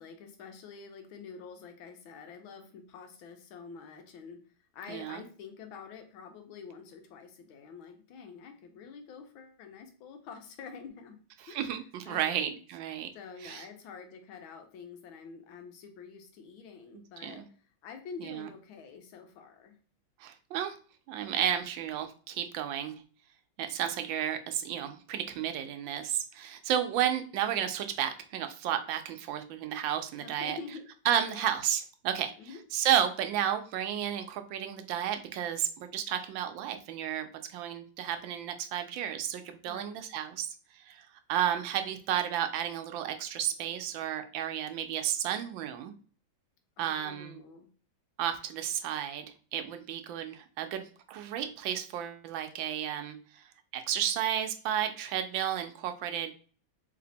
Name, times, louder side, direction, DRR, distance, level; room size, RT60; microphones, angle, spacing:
voice 1, 0.0-4.4 4.7-11.2 11.5-11.6 12.0-12.6 13.1-19.8 30.2-30.8 31.2-31.5 32.4-32.6 39.7-40.0 46.8-47.7, left 5 dB, 90° left, 6 dB, 1.6 m, -47 dB
voice 2, 4.9-5.2 11.5-13.1 13.4-13.6 17.2-17.4 18.2-18.5 20.2-20.8 21.1-23.0 23.6-30.6 31.1-32.3 32.7-40.5 40.7-45.9 46.8-47.4 48.2-53.4 53.7-56.3, right 10 dB, 80° right, 8 dB, 1.3 m, -32 dB
3.4 x 3.2 x 3.9 m, 0.41 s
omnidirectional pair, 2.1 m